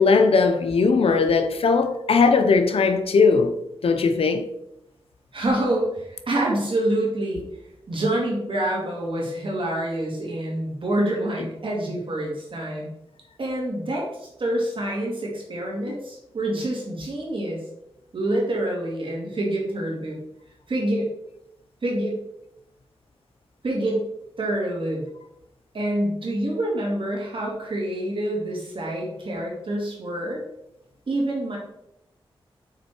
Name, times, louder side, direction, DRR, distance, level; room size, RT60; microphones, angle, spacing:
voice 1, 0.0-3.5 3.8-4.5 15.9-16.0, left 4 dB, 80° left, 0.7 m, -19 dB
voice 2, 5.3-7.4 7.9-12.9 13.4-17.6 18.1-20.2 20.7-21.1 21.8-22.2 23.6-24.0 24.4-25.0 25.7-30.4 31.1-31.6, right 1 dB, 60° right, 2.4 m, -26 dB
6.0 x 4.2 x 4.5 m
wide cardioid pair, 70°, 10 cm